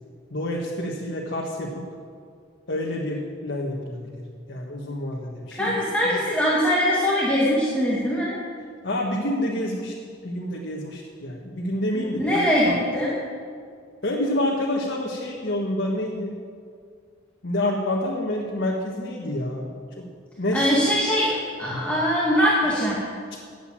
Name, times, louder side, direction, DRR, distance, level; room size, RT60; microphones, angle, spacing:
voice 1, 0.3-1.8 2.7-4.2 4.5-5.8 6.0-6.1 8.8-9.9 10.2-12.8 14.0-16.3 17.4-19.7 20.0-20.1 20.4-20.6, left 1 dB, 60° left, -3 dB, 1.6 m, -28 dB
voice 2, 5.5-8.4 11.9-13.2 20.5-23.0, equal, 5° left, -7 dB, 2.0 m, -22 dB
13.0 x 8.3 x 8.9 m, 2.2 s
head